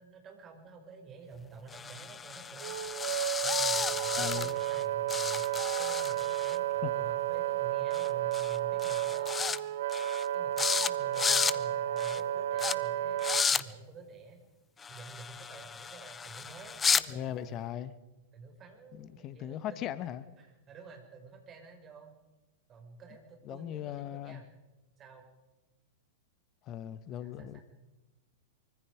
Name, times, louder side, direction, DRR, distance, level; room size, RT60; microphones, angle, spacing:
voice 1, 0.0-2.8 3.4-9.6 10.3-14.4 14.9-17.7 18.3-19.8 20.4-22.1 22.7-24.5 25.0-25.2 27.2-27.6, right 4 dB, 25° right, 3 dB, 5.8 m, -50 dB
sound 1, 1.7-4.8 5.1-6.6 7.9-8.1 8.3-8.6 8.8-9.6 9.9-10.3 10.6-10.9 11.1-11.6 12.0-12.2 12.6-12.7 13.2-13.6 14.8-17.0, left 6 dB, 15° left, 0.7 m, -33 dB
Wind instrument woodwind instrument, 2.6-13.5, right 13 dB, 55° right, 0.8 m, -32 dB
voice 2, 4.2-4.5 6.8-7.0 17.1-17.9 18.9-20.3 23.4-24.4 26.6-27.6, left 11 dB, 35° left, 15 dB, 1.2 m, -39 dB
24.5 x 24.5 x 5.1 m, 1.1 s
figure-of-eight pair, 100°, 0 cm